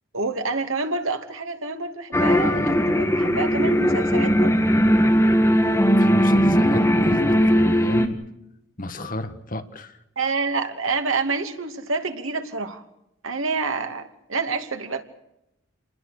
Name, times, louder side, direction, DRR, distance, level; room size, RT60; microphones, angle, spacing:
voice 1, 0.1-4.6 10.2-12.8 13.2-15.0, right 3 dB, 90° right, 6 dB, 2.6 m, -27 dB
sound 1, 2.1-8.1, equal, 15° left, 1.8 m, -19 dB
voice 2, 6.0-8.2 8.8-10.0, left 1 dB, 40° left, 8 dB, 1.6 m, -31 dB
28.5 x 21.0 x 6.6 m, 0.84 s
head